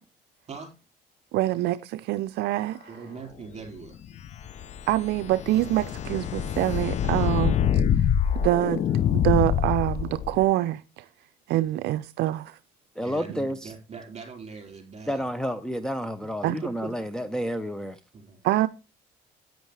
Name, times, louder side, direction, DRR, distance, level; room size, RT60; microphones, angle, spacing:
voice 1, 1.3-2.8 4.9-7.8 8.4-8.8 9.1-11.1 11.5-12.6 16.4-16.6 18.4-18.7, right 15 dB, 75° right, 0.5 m, -25 dB
voice 2, 2.9-4.0 13.0-15.3 16.2-16.5 16.8-16.9 18.1-18.4, right 5 dB, 40° right, 4.7 m, -41 dB
sound 1, 4.1-10.4, left 9 dB, 45° left, 0.5 m, -25 dB
voice 3, 13.0-13.7 15.1-18.0, equal, 5° left, 0.7 m, -30 dB
10.5 x 9.2 x 3.3 m
cardioid pair, 110°, 17 cm